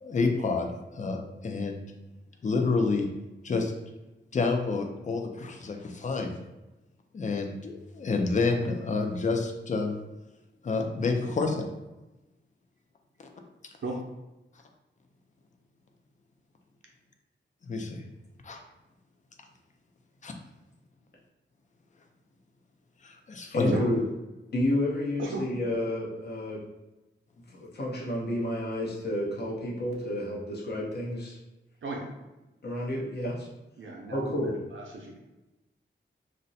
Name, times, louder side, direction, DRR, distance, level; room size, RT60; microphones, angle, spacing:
voice 1, 0.0-1.8 2.4-3.1 3.4-3.7 4.3-6.4 7.1-9.9 10.6-11.7 17.6-18.0 18.4-18.6 20.2-20.3 23.0-23.8, left 4 dB, 40° left, 4 dB, 0.4 m, -28 dB
voice 2, 23.5-24.0 24.5-26.6 27.6-31.4 32.6-33.5 34.1-34.5, left 1 dB, 55° left, -4 dB, 0.8 m, -30 dB
voice 3, 31.8-32.1 33.8-34.3 34.7-35.2, right 2 dB, 75° right, 0 dB, 0.7 m, -35 dB
2.6 x 2.1 x 4.0 m, 1.0 s
wide cardioid pair, 140°, 20 cm